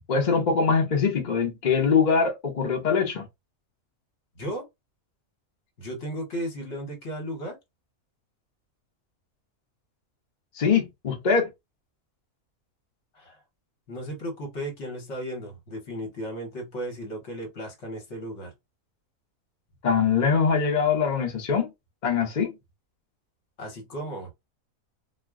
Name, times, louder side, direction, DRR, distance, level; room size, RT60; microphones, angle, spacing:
voice 1, 0.1-3.3 10.5-11.5 19.8-21.7 22.0-22.5, left 5 dB, 40° left, 0.7 m, -23 dB
voice 2, 4.3-4.7 5.8-7.6 13.1-13.4 13.9-18.5 23.6-24.3, equal, 60° left, 1.3 m, -35 dB
2.4 x 2.1 x 3.4 m
omnidirectional pair, 1.4 m